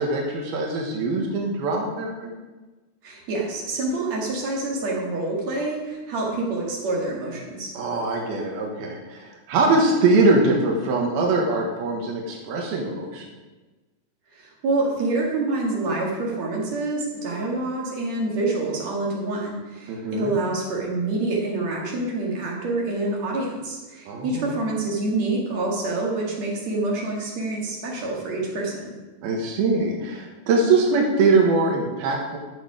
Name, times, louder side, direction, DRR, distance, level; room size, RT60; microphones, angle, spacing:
voice 1, 0.0-2.4 7.7-13.3 19.9-20.4 24.1-24.5 29.2-32.4, right 3 dB, 90° right, 0 dB, 3.2 m, -22 dB
voice 2, 3.0-7.7 14.3-28.9, right 2 dB, 50° right, -2 dB, 2.9 m, -27 dB
11.5 x 6.8 x 4.9 m, 1.2 s
omnidirectional pair, 4.2 m